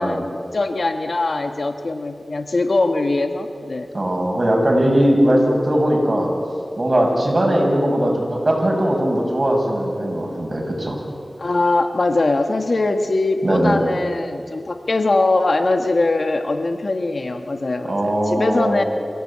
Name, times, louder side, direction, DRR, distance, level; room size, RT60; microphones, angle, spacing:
voice 1, 0.0-3.9 11.4-18.8, left 2 dB, 65° left, 6 dB, 1.4 m, -21 dB
voice 2, 3.9-6.3 6.8-11.0 13.4-13.8 17.9-18.8, right 1 dB, 45° right, 0 dB, 6.4 m, -19 dB
26.5 x 16.5 x 8.7 m, 2.4 s
wide cardioid pair, 60°, 0 cm